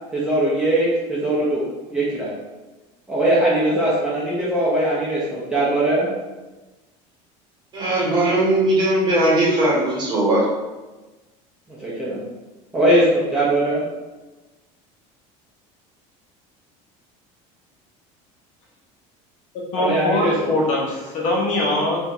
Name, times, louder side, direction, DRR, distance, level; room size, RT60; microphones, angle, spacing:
voice 1, 0.1-1.6 1.9-2.3 3.1-6.1 11.8-12.2 12.7-13.8 19.8-20.5, right 1 dB, 5° right, -9 dB, 0.9 m, -20 dB
voice 2, 7.7-10.4, right 1 dB, 30° right, -5 dB, 1.4 m, -19 dB
voice 3, 19.7-22.0, left 1 dB, 55° left, -3 dB, 1.1 m, -22 dB
3.4 x 2.9 x 3.8 m, 1.1 s
cardioid pair, 150°, 15 cm